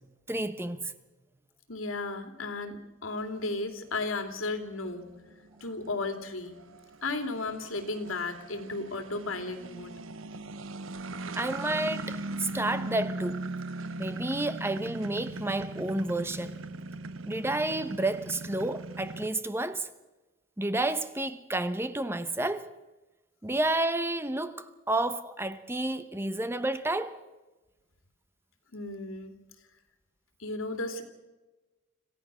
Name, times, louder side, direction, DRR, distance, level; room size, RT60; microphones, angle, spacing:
voice 1, 0.3-0.9 11.4-13.4 14.0-16.6 17.2-19.9 20.6-22.7 23.4-27.2, right 2 dB, 10° right, 0.8 m, -30 dB
voice 2, 1.7-2.8 3.0-5.1 5.6-6.6 7.0-10.0 28.7-29.3 30.4-31.0, left 3 dB, 85° left, 2.8 m, -34 dB
sound 1, 3.2-19.3, right 2 dB, 80° right, 1.0 m, -39 dB
26.5 x 15.5 x 6.3 m
head